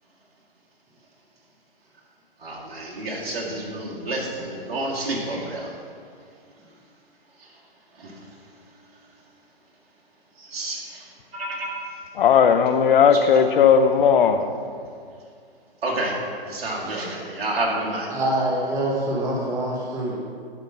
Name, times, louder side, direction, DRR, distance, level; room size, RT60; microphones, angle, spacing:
voice 1, 2.4-5.8 7.4-7.6 7.9-8.4 10.4-11.7 15.8-18.1, right 2 dB, 80° right, -4 dB, 2.2 m, -30 dB
voice 2, 12.2-14.5, left 7 dB, 60° left, 9 dB, 0.6 m, -16 dB
voice 3, 18.1-20.2, right 1 dB, 10° right, -3 dB, 1.1 m, -25 dB
10.5 x 3.8 x 5.7 m, 2.2 s
hypercardioid pair, 155°, 30 cm